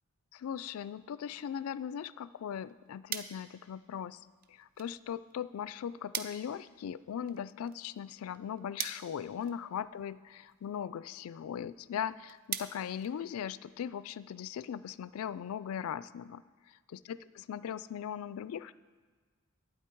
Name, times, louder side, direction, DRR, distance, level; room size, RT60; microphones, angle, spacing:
voice 1, 0.3-4.2 4.5-18.7, left 8 dB, 90° left, 17 dB, 0.3 m, -39 dB
sound 1, 2.4-13.8, right 9 dB, 40° right, 0.5 m, -46 dB
11.5 x 9.0 x 4.5 m, 1.5 s
head